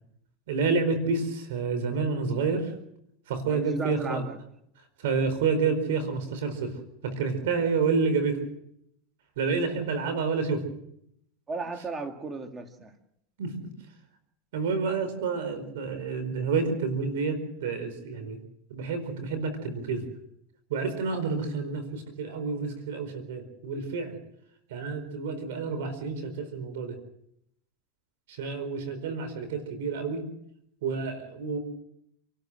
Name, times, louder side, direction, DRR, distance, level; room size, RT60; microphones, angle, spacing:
voice 1, 0.5-2.7 3.3-4.2 5.0-6.7 7.0-8.4 9.4-10.6 13.4-13.7 14.5-18.4 18.7-20.0 20.7-24.2 24.7-27.0 28.3-30.2 30.8-31.6, right 4 dB, 80° right, 10 dB, 4.6 m, -29 dB
voice 2, 3.5-4.4 11.5-12.9, right 3 dB, 20° right, 5 dB, 2.1 m, -35 dB
28.5 x 13.0 x 7.7 m, 0.75 s
supercardioid pair, 125°, 0 cm